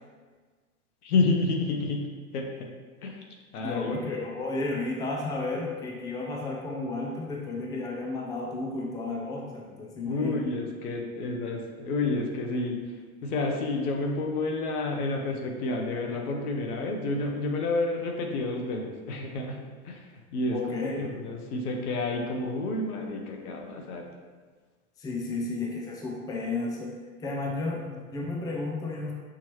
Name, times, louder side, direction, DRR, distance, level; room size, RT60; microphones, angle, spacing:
voice 1, 1.0-2.0 2.3-2.5 3.0-3.2 3.5-4.2 10.0-12.8 13.2-20.0 20.3-20.6 21.0-24.1, left 2 dB, 75° left, 1 dB, 1.0 m, -29 dB
voice 2, 3.6-10.4 20.5-21.1 25.0-26.9 27.2-29.1, left 2 dB, 10° left, -2 dB, 0.5 m, -32 dB
6.0 x 2.9 x 3.0 m, 1.5 s
hypercardioid pair, 105°, 45 cm